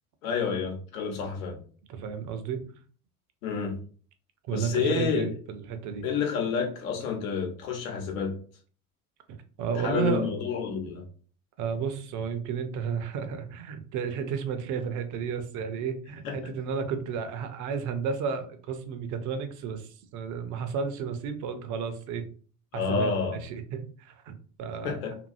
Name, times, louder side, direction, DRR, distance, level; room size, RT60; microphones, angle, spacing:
voice 1, 0.2-1.6 3.4-3.8 4.5-5.3 6.0-8.4 9.8-11.0 16.2-16.4 22.7-23.4 24.8-25.2, left 6 dB, 70° left, 1 dB, 1.0 m, -29 dB
voice 2, 1.9-2.6 4.4-6.1 9.6-10.3 11.6-22.3 22.7-24.3 24.6-25.0, right 6 dB, 45° right, 8 dB, 0.6 m, -32 dB
2.7 x 2.6 x 2.5 m, 0.43 s
figure-of-eight pair, 65°, 43 cm